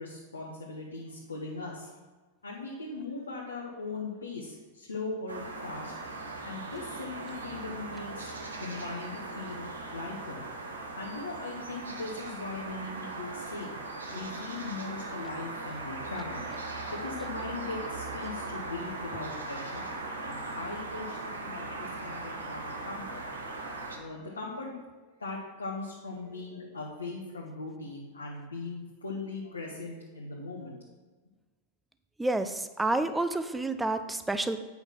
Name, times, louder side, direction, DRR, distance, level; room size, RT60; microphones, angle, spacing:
voice 1, 0.0-2.0 2.4-5.9 6.4-8.3 8.6-10.4 11.0-13.7 14.1-16.4 16.9-19.8 20.2-23.2 23.9-30.8, left 3 dB, 85° left, -3 dB, 1.4 m, -39 dB
sound 1, 5.3-24.0, right 2 dB, 85° right, 1.3 m, -39 dB
voice 2, 32.2-34.6, right 2 dB, 10° right, 10 dB, 0.7 m, -29 dB
8.3 x 5.7 x 6.0 m, 1.3 s
hypercardioid pair, 95°, 0 cm